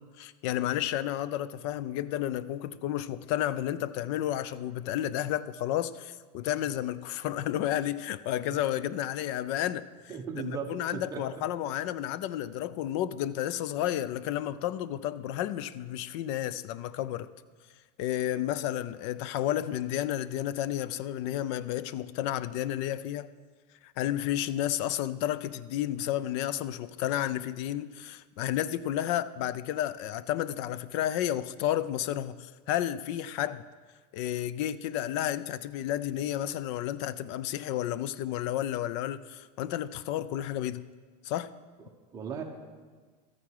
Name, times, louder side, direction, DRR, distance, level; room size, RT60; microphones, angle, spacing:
voice 1, 0.0-9.8 10.4-17.3 18.0-23.3 23.8-33.6 34.1-40.8 41.2-41.5, left 12 dB, 45° left, 0.4 m, -31 dB
voice 2, 10.1-11.4 41.8-42.4, right 6 dB, 15° right, 1.2 m, -37 dB
13.0 x 9.2 x 4.8 m
supercardioid pair, 165°, 21 cm